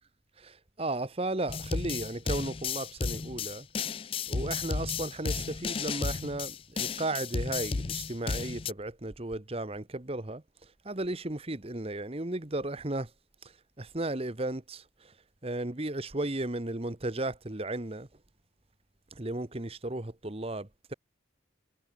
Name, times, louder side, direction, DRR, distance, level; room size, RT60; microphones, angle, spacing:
voice 1, 0.4-3.7 4.3-10.4 10.8-13.1 13.4-15.1 15.4-18.1 19.1-20.9, right 2 dB, 30° right, 1.2 m, -35 dB
sound 1, 1.5-8.7, left 5 dB, 30° left, 0.4 m, -33 dB
head